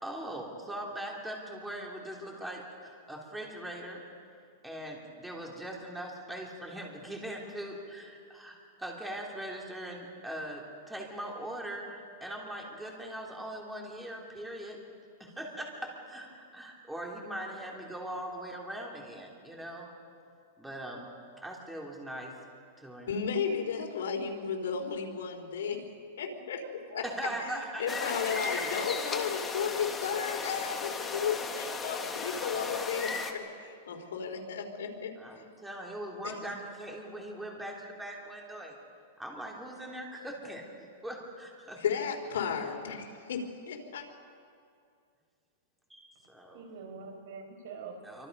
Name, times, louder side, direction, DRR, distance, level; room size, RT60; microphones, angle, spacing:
voice 1, 0.0-4.0 4.6-14.8 15.2-19.9 20.6-21.1 21.4-22.3 22.8-23.1 27.0-28.1 32.1-32.9 35.2-38.8 39.2-40.7 41.0-41.8 45.9-46.6 48.0-48.3, right 1 dB, 5° right, -1 dB, 3.0 m, -41 dB
voice 2, 23.1-25.9 26.2-26.6 26.9-27.0 27.4-35.1 41.8-44.0, left 6 dB, 85° left, 2 dB, 3.7 m, -34 dB
voice 3, 26.3-27.0 27.3-28.1 46.5-48.0, right 5 dB, 60° right, 2 dB, 5.4 m, -46 dB
sound 1, 27.9-33.3, left 4 dB, 15° left, 1.5 m, -36 dB
26.5 x 24.5 x 5.4 m, 2.4 s
supercardioid pair, 160°, 0 cm